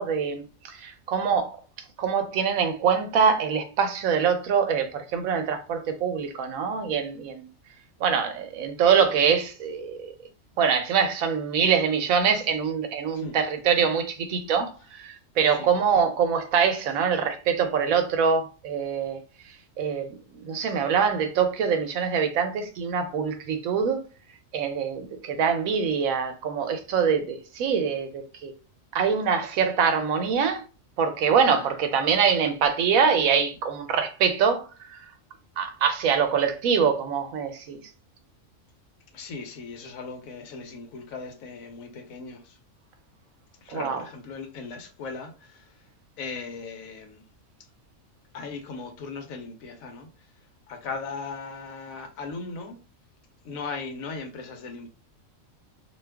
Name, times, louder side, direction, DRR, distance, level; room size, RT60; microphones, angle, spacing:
voice 1, 0.0-1.6 2.0-7.5 8.0-10.1 10.6-19.2 19.8-20.1 20.4-24.0 24.5-28.5 28.9-30.6 31.0-35.0 35.6-37.8 43.7-44.0, right 6 dB, 85° right, 1.1 m, -24 dB
voice 2, 39.1-42.6 43.6-45.8 46.2-47.2 48.3-50.1 50.7-52.8 53.4-54.9, left 4 dB, 85° left, 1.1 m, -38 dB
2.6 x 2.2 x 3.3 m
omnidirectional pair, 1.4 m